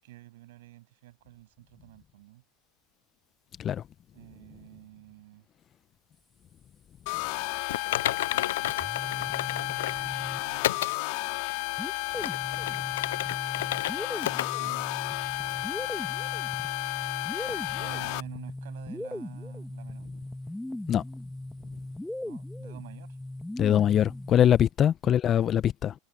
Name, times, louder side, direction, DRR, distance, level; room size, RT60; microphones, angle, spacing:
voice 1, 0.0-2.4 4.1-5.5 8.3-11.2 14.6-15.5 17.4-20.1 22.2-23.2 25.0-25.1, right 17 dB, 75° right, 7.8 m, -50 dB
sound 1, 7.1-18.2, left 26 dB, 65° left, 2.2 m, -32 dB
Typing, 7.7-10.0 10.6-11.0 11.5-11.6 12.1-13.9 14.2-14.5 14.8-14.9 15.5-15.6, left 13 dB, 80° left, 0.4 m, -31 dB
sound 2, 8.7-10.8 11.8-24.7, left 1 dB, 5° left, 1.9 m, -39 dB
voice 2, 23.6-25.9, left 10 dB, 35° left, 1.0 m, -23 dB
hypercardioid pair, 95°, 0 cm